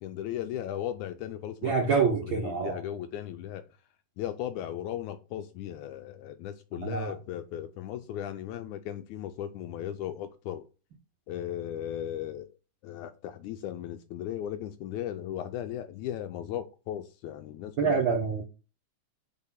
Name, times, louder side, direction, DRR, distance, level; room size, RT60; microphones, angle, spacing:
voice 1, 0.0-2.0 2.2-3.6 4.2-10.7 11.3-12.5 12.8-18.0, left 11 dB, 80° left, 1.8 m, -36 dB
voice 2, 1.6-2.8 6.8-7.1 17.8-18.4, right 5 dB, 75° right, 1.1 m, -26 dB
4.9 x 4.5 x 5.7 m
omnidirectional pair, 3.9 m